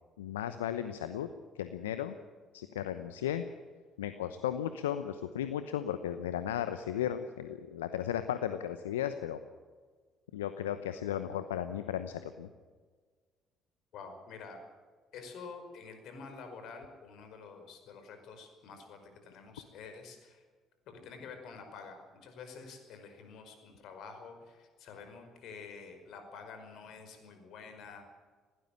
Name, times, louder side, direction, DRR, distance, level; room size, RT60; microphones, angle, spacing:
voice 1, 0.2-1.3 1.5-2.2 2.5-3.4 4.0-9.4 10.3-12.5, left 10 dB, 80° left, 10 dB, 0.9 m, -35 dB
voice 2, 13.9-14.6 15.1-20.4 20.8-28.1, left 5 dB, 60° left, 6 dB, 5.1 m, -48 dB
21.0 x 17.0 x 9.0 m, 1.5 s
hypercardioid pair, 50°, 0 cm